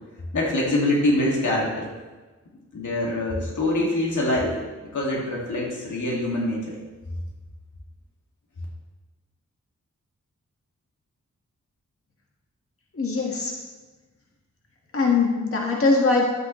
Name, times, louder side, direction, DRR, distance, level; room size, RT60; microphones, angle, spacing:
voice 1, 0.3-1.9 2.7-4.5 4.8-6.6, left 1 dB, 90° left, -3 dB, 2.1 m, -24 dB
voice 2, 12.9-13.5 14.9-16.2, left 4 dB, 50° left, -2 dB, 1.6 m, -21 dB
12.0 x 8.6 x 3.1 m, 1.3 s
wide cardioid pair, 100°, 29 cm